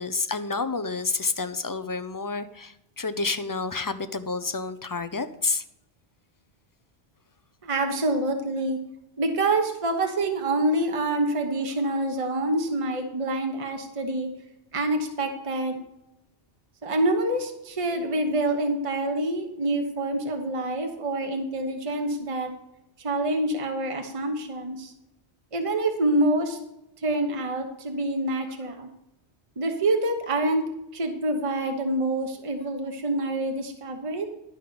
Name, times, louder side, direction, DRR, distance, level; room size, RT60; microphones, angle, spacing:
voice 1, 0.0-5.6, left 4 dB, 25° left, 11 dB, 0.4 m, -29 dB
voice 2, 7.6-8.9 9.2-14.3 14.7-15.8 16.8-22.5 23.0-24.9 25.5-26.6 27.0-28.9 29.6-30.6 30.9-34.3, right 2 dB, 30° right, 4 dB, 1.1 m, -26 dB
11.5 x 5.4 x 6.8 m, 0.86 s
omnidirectional pair, 1.1 m